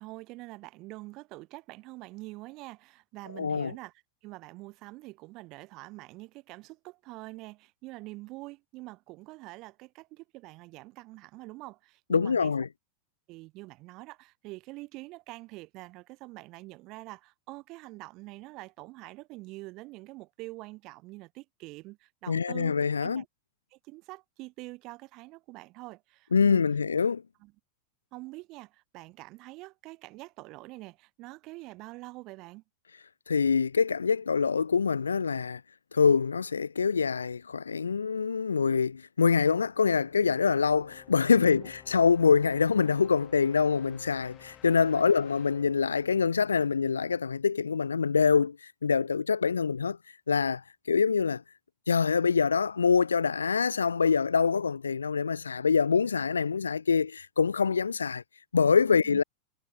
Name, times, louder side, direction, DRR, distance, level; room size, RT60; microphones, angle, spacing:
voice 1, 0.0-3.9 4.2-12.5 13.3-23.3 23.7-26.6 27.4-27.5 28.1-32.6 41.3-41.7 44.9-45.1 58.9-59.2, right 21 dB, 40° right, 3.9 m, -45 dB
voice 2, 3.3-3.7 12.1-12.7 22.3-23.2 26.3-27.2 33.3-35.6 35.9-50.0 50.3-50.6 50.9-51.4 51.9-58.2 58.5-59.2, left 5 dB, 75° left, 0.4 m, -25 dB
sound 1, 39.7-47.5, left 11 dB, 30° left, 1.8 m, -55 dB
figure-of-eight pair, 90°, 0 cm